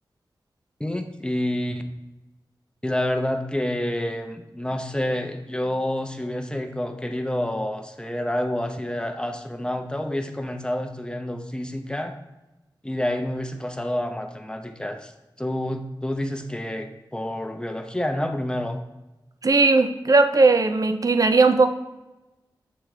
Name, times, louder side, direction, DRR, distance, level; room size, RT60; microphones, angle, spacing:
voice 1, 0.8-1.8 2.8-12.1 12.8-15.1 15.4-18.8, left 1 dB, 10° left, 5 dB, 0.7 m, -28 dB
voice 2, 19.4-21.7, right 3 dB, 45° right, 9 dB, 0.5 m, -18 dB
7.7 x 3.4 x 4.9 m, 1.0 s
wide cardioid pair, 80°, 8 cm